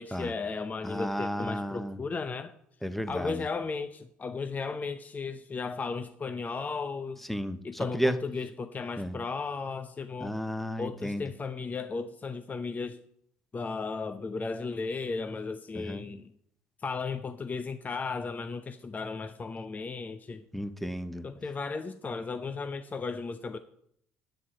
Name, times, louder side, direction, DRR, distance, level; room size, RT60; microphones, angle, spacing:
voice 1, 0.0-2.5 3.1-7.2 7.6-10.4 10.8-13.0 13.5-16.3 16.8-20.4 21.2-23.6, left 4 dB, 30° left, 11 dB, 0.7 m, -35 dB
voice 2, 0.8-2.0 2.8-3.5 7.3-8.2 9.0-9.2 10.2-11.2 15.7-16.1 20.5-21.3, equal, 5° left, 12 dB, 1.1 m, -33 dB
10.0 x 7.3 x 8.5 m, 0.71 s
hypercardioid pair, 65°, 5 cm